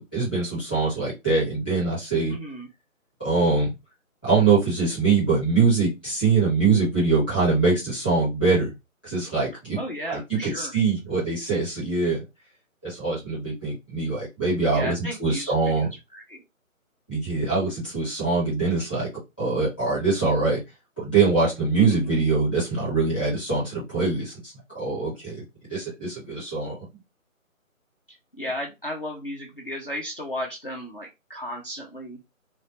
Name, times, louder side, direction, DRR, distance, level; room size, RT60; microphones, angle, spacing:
voice 1, 0.0-2.3 3.2-3.7 4.2-8.7 9.0-9.8 10.1-12.2 12.8-15.9 17.1-19.1 19.4-20.6 21.0-25.4 25.7-26.7, right 4 dB, 5° left, -11 dB, 0.8 m, -23 dB
voice 2, 2.3-2.7 9.8-10.7 14.7-16.4 21.9-22.1 28.3-32.2, equal, 40° left, -1 dB, 0.5 m, -34 dB
2.2 x 2.1 x 2.8 m, 0.23 s
figure-of-eight pair, 160°, 42 cm